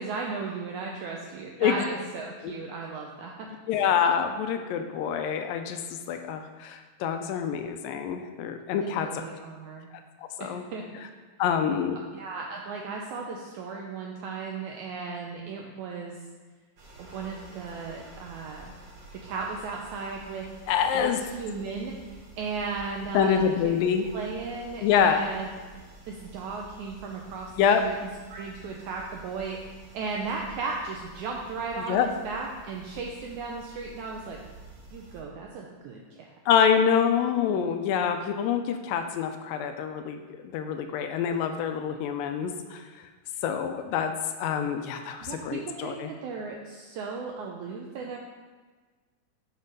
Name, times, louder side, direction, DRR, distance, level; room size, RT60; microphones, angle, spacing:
voice 1, 0.0-3.5 8.8-9.9 10.4-11.1 11.9-16.2 17.0-18.7 19.1-20.4 20.9-23.7 24.1-25.5 26.1-27.5 27.8-28.0 28.3-34.4 34.9-36.3 45.2-48.2, right 4 dB, 80° right, 0 dB, 1.7 m, -36 dB
voice 2, 3.7-9.2 10.4-10.6 11.4-12.0 20.7-21.2 23.1-24.1 24.8-25.3 27.6-27.9 31.9-32.1 36.5-42.8 43.4-44.1 44.4-46.1, left 7 dB, 80° left, 7 dB, 2.2 m, -26 dB
sound 1, 16.8-35.2, right 2 dB, 50° right, 1.7 m, -49 dB
6.5 x 5.9 x 5.3 m, 1.4 s
omnidirectional pair, 4.1 m